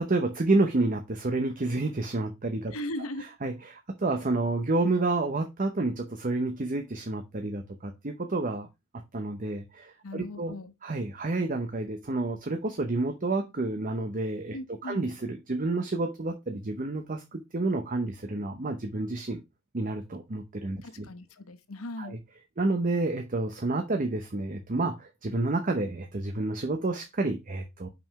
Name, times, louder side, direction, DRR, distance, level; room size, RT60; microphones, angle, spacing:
voice 1, 0.0-2.7 3.4-8.7 9.1-10.5 10.8-14.6 14.8-19.4 19.7-21.1 22.0-22.2 22.6-27.9, right 2 dB, 40° right, 0.8 m, -29 dB
voice 2, 2.7-3.2 10.0-10.7 14.5-15.0 20.8-22.2, left 1 dB, 90° left, 1.0 m, -38 dB
6.0 x 5.5 x 4.7 m
head